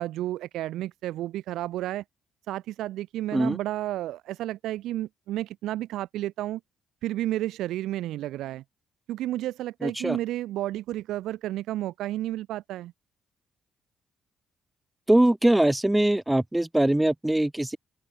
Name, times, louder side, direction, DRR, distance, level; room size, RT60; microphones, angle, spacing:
voice 1, 0.0-2.0 2.5-6.6 7.0-8.6 9.1-12.9, right 14 dB, 85° right, 3.4 m, -31 dB
voice 2, 9.8-10.2 15.1-17.8, right 1 dB, 10° right, 0.4 m, -22 dB
open air
cardioid pair, 90°, 0 cm